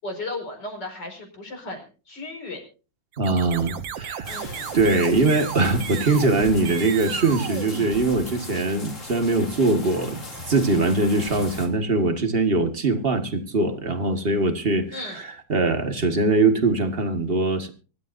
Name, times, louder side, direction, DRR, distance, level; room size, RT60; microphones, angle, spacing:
voice 1, 0.0-2.6 4.2-4.8 14.9-15.2, left 2 dB, 65° left, 3 dB, 5.6 m, -35 dB
sound 1, 3.1-8.6, right 8 dB, 90° right, 1.8 m, -35 dB
voice 2, 3.2-4.4 4.7-17.7, right 3 dB, 30° right, 7 dB, 1.8 m, -22 dB
sound 2, 4.2-11.7, left 1 dB, 40° left, 3.5 m, -39 dB
25.0 x 13.0 x 2.7 m, 0.34 s
omnidirectional pair, 2.0 m